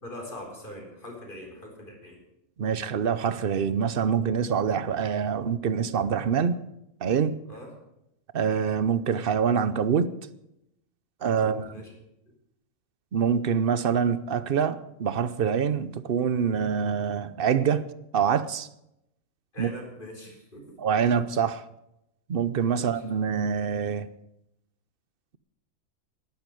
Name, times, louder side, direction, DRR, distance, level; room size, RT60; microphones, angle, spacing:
voice 1, 0.0-2.2 7.5-7.7 11.2-11.9 19.5-20.8 22.7-23.0, left 1 dB, 35° left, 4.3 m, -42 dB
voice 2, 2.6-6.6 7.0-7.4 8.3-10.1 11.2-11.7 13.1-17.9 18.1-18.7 19.6-19.7 20.8-21.6 22.3-24.1, right 7 dB, 50° right, 0.8 m, -25 dB
11.5 x 11.0 x 9.3 m
omnidirectional pair, 1.5 m